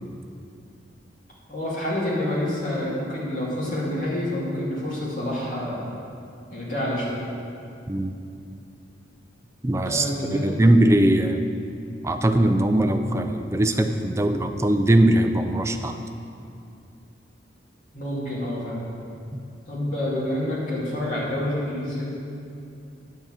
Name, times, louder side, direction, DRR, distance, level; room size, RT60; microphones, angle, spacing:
voice 1, 1.5-5.8 6.5-7.2 9.8-10.5 17.9-18.8 19.7-22.1, left 1 dB, 45° left, -7 dB, 2.2 m, -28 dB
voice 2, 9.6-11.5 12.0-16.0 19.3-19.4, right 1 dB, 15° right, 6 dB, 0.4 m, -21 dB
9.1 x 4.6 x 7.3 m, 2.5 s
head